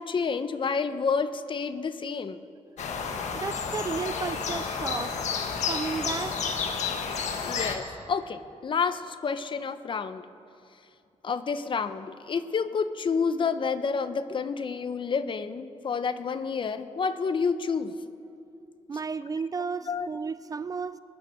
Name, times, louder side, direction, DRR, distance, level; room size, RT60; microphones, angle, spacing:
voice 1, 0.0-2.4 7.4-10.2 11.2-18.0 19.9-20.1, left 5 dB, 45° left, 12 dB, 0.7 m, -29 dB
sound 1, 2.8-7.8, left 5 dB, 70° left, 1.5 m, -31 dB
voice 2, 3.4-5.2 5.7-6.4 18.9-21.0, right 5 dB, 30° right, 15 dB, 0.3 m, -33 dB
21.0 x 9.8 x 6.6 m, 2.5 s
cardioid pair, 115°, 12 cm